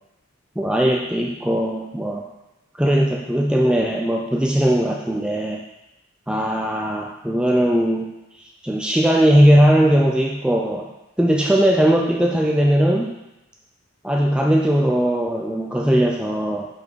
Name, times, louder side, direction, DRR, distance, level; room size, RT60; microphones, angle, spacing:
voice 1, 0.6-2.3 2.8-5.6 6.3-8.1 8.6-10.9 11.2-13.1 14.0-16.7, equal, 5° right, 0 dB, 0.4 m, -19 dB
7.4 x 5.3 x 4.6 m, 0.95 s
head